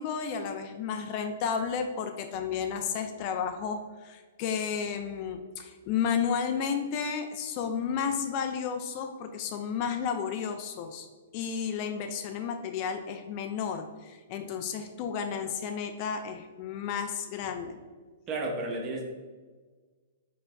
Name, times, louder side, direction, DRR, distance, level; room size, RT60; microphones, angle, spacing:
voice 1, 0.0-11.1 11.3-17.8, left 7 dB, 40° left, 6 dB, 0.4 m, -32 dB
voice 2, 18.3-19.0, right 2 dB, 30° right, 1 dB, 0.9 m, -32 dB
5.0 x 4.4 x 2.3 m, 1.4 s
figure-of-eight pair, 110°, 0 cm